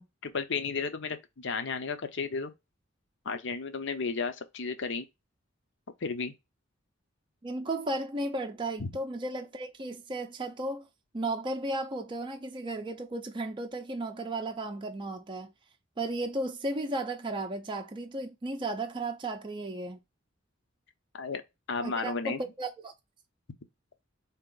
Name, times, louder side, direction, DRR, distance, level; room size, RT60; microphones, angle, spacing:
voice 1, 0.0-2.5 3.3-5.1 6.0-6.3 8.8-8.9 21.1-21.4 21.7-22.4, left 4 dB, 65° left, 0.7 m, -33 dB
voice 2, 7.4-10.9 11.1-15.5 16.0-20.0 21.8-22.9, right 2 dB, 25° right, 0.5 m, -34 dB
4.2 x 2.9 x 3.7 m
head